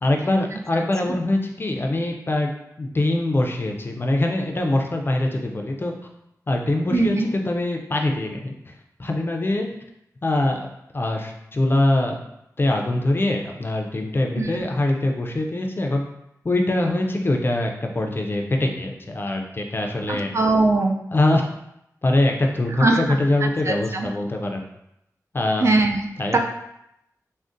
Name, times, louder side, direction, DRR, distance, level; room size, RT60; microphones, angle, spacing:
voice 1, 0.0-2.5 2.8-5.9 6.5-8.7 9.0-9.7 10.2-10.6 10.9-12.1 12.6-16.0 16.4-20.3 21.1-21.5 22.0-24.6 25.3-25.7 26.2-26.4, left 1 dB, 35° left, 2 dB, 0.4 m, -23 dB
voice 2, 6.9-7.3 14.4-14.6 20.1-21.0 22.8-23.0 23.7-24.1 25.6-26.0 26.3-26.4, right 2 dB, 45° right, 3 dB, 0.3 m, -20 dB
3.6 x 2.1 x 2.5 m, 0.81 s
wide cardioid pair, 80°, 6 cm